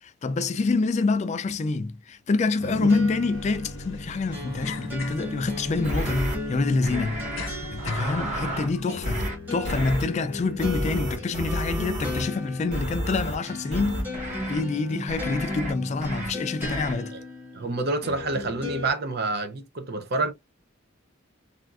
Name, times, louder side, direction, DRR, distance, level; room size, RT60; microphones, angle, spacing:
voice 1, 0.0-7.3 7.7-14.0 14.5-17.1, left 3 dB, 35° left, 0.3 m, -26 dB
sound 1, 2.6-18.9, left 2 dB, 10° right, 1.2 m, -36 dB
sound 2, 3.3-8.8, left 3 dB, 85° left, 0.7 m, -40 dB
sound 3, 5.8-6.4 6.8-7.5 7.8-8.7 9.0-9.4 9.6-10.0 10.6-12.3 12.7-13.4 13.7-14.6 15.1-15.7 16.0-16.3 16.6-16.9, right 1 dB, 35° right, 1.2 m, -31 dB
voice 2, 17.5-20.3, right 3 dB, 55° right, 0.6 m, -28 dB
3.4 x 2.4 x 2.3 m
head